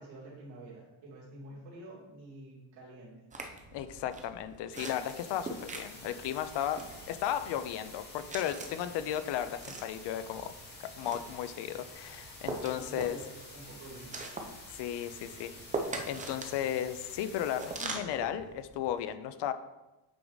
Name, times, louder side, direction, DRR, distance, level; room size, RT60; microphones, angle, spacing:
voice 1, 0.0-3.1 12.7-14.1, right 2 dB, 70° right, -5 dB, 2.7 m, -48 dB
sound 1, 3.3-19.0, right 3 dB, 15° right, 0.7 m, -43 dB
voice 2, 3.7-10.5 11.0-13.2 14.7-15.5 16.1-19.5, left 10 dB, 65° left, 11 dB, 0.7 m, -35 dB
sound 2, 4.7-17.9, left 2 dB, 20° left, 1.8 m, -50 dB
8.4 x 4.8 x 4.0 m, 1.0 s
cardioid pair, 160°, 45 cm